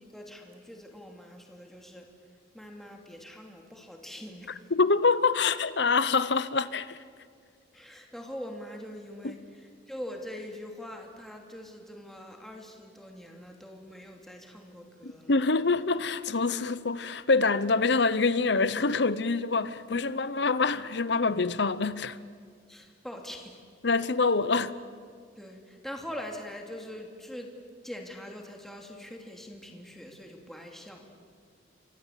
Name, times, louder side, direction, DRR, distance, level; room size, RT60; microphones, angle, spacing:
voice 1, 0.1-2.1 2.5-4.7 7.7-15.3 22.7-23.6 25.4-27.5 27.8-31.2, equal, ahead, 2.8 m, -43 dB
voice 2, 4.7-7.0 9.2-9.3 15.0-22.2 23.8-24.8, left 4 dB, 65° left, 0.9 m, -25 dB
28.5 x 25.0 x 8.4 m
head